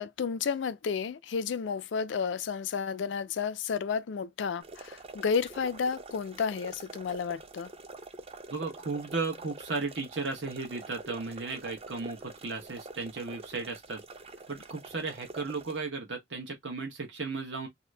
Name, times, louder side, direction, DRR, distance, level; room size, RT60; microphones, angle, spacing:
voice 1, 0.0-7.7, left 6 dB, 80° left, 0.4 m, -32 dB
sound 1, 4.6-15.8, right 3 dB, 35° right, 0.5 m, -47 dB
voice 2, 8.5-14.0 14.5-17.7, right 3 dB, 80° right, 1.0 m, -35 dB
2.8 x 2.5 x 3.2 m
head